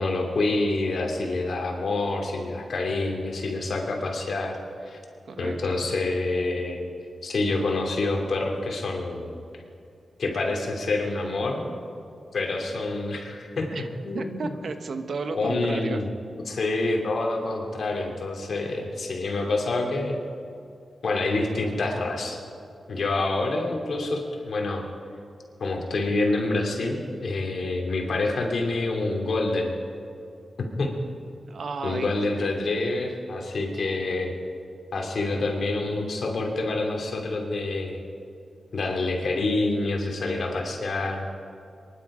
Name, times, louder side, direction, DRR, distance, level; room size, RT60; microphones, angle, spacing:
voice 1, 0.0-4.6 4.8-5.0 5.4-6.9 7.2-9.3 10.2-11.7 12.3-13.7 14.0-14.5 15.3-16.1 16.5-20.2 21.0-22.4 22.9-24.8 25.6-29.7 30.6-30.9 31.8-34.3 34.9-38.0 38.7-41.2, left 2 dB, 70° left, 1 dB, 2.8 m, -27 dB
voice 2, 5.3-5.8 13.7-13.9 14.1-16.0 31.5-32.2, right 4 dB, 70° right, 8 dB, 1.1 m, -33 dB
23.0 x 11.5 x 5.0 m, 2.5 s
cardioid pair, 75°, 0 cm